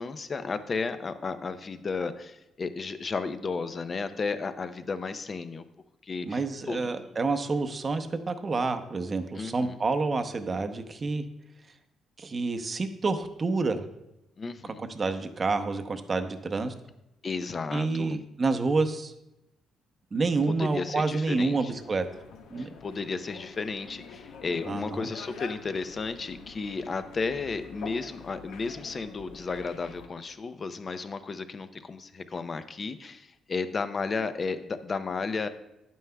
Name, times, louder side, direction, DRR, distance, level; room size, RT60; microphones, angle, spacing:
voice 1, 0.0-5.6 6.0-7.2 9.3-9.8 14.4-14.8 17.2-18.2 20.5-21.7 22.6-35.5, left 4 dB, 40° left, 10 dB, 0.6 m, -33 dB
voice 2, 6.2-11.2 12.2-13.8 14.8-16.7 17.7-19.1 20.1-22.1 22.5-22.7 24.7-25.1, right 3 dB, 35° right, 8 dB, 0.8 m, -28 dB
sound 1, 21.7-30.1, left 5 dB, 90° left, 0.8 m, -46 dB
11.0 x 9.3 x 2.3 m, 0.90 s
cardioid pair, 90°, 0 cm